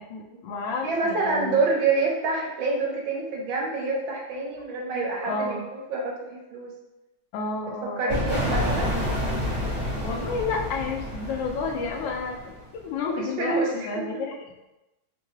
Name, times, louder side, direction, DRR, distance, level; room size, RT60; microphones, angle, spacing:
voice 1, 0.0-1.6 5.2-5.6 7.3-8.3 10.0-14.4, left 4 dB, 75° left, 0 dB, 1.2 m, -31 dB
voice 2, 0.8-5.6 5.9-6.7 8.0-9.0 13.2-13.7, right 3 dB, 75° right, -2 dB, 1.5 m, -27 dB
sound 1, 8.1-12.8, left 1 dB, 40° right, 1.2 m, -29 dB
3.7 x 2.2 x 3.0 m, 0.97 s
omnidirectional pair, 2.2 m